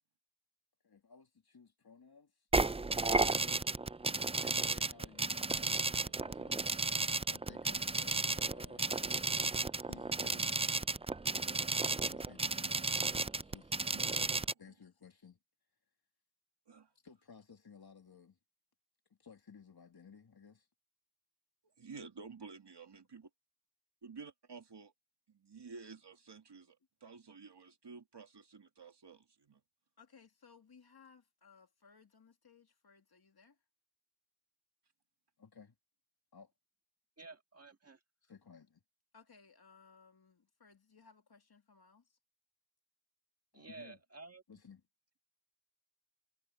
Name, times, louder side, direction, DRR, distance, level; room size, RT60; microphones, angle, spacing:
voice 1, 0.8-2.5 3.0-3.5 4.4-6.8 7.3-9.3 9.7-10.6 11.5-13.8 14.6-15.4 17.0-18.4 19.1-20.7 30.0-33.6 35.4-35.8 36.3-36.5 38.2-38.8 39.1-42.2 43.5-44.0 44.5-44.8, left 6 dB, 65° left, 2.4 m, -58 dB
sound 1, 2.5-14.5, right 3 dB, 15° right, 0.4 m, -33 dB
voice 2, 13.9-14.6 16.7-16.9 21.8-23.3 24.0-24.9 25.3-29.6, right 4 dB, 80° right, 2.5 m, -52 dB
voice 3, 37.2-38.0 43.5-44.4, right 3 dB, 35° right, 1.9 m, -52 dB
wide cardioid pair, 70°, 41 cm